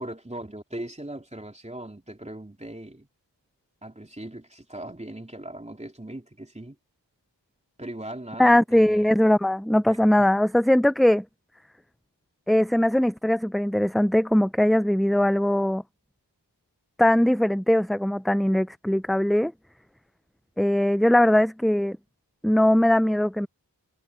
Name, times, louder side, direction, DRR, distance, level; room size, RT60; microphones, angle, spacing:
voice 1, 0.0-3.1 3.8-6.8 7.8-9.1 9.8-10.0, right 1 dB, 15° right, 3.4 m, -39 dB
voice 2, 8.4-11.2 12.5-15.8 17.0-19.5 20.6-22.0 22.4-23.5, left 1 dB, ahead, 0.3 m, -20 dB
cardioid pair, 45°, 43 cm